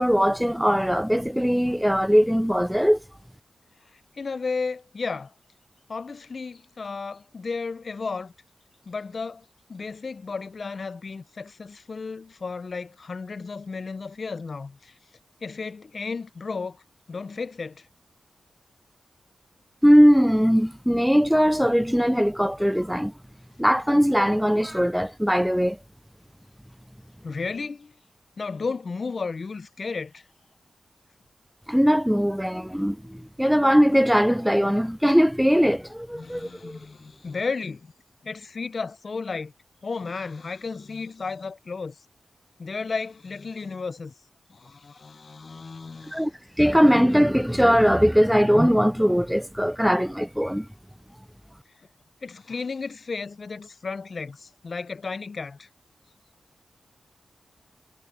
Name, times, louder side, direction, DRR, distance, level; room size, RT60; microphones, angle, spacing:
voice 1, 0.0-3.0 19.8-23.1 23.6-25.8 31.7-36.8 46.1-46.3 46.6-50.7, equal, ahead, 0.3 m, -20 dB
voice 2, 3.9-5.3 5.9-8.3 8.9-14.9 15.4-16.8 17.1-17.9 27.2-27.9 28.4-30.2 36.1-37.9 38.2-39.5 39.8-42.0 42.6-44.1 44.5-46.3 52.2-55.7, left 4 dB, 60° left, 0.5 m, -33 dB
cardioid pair, 45°, 0 cm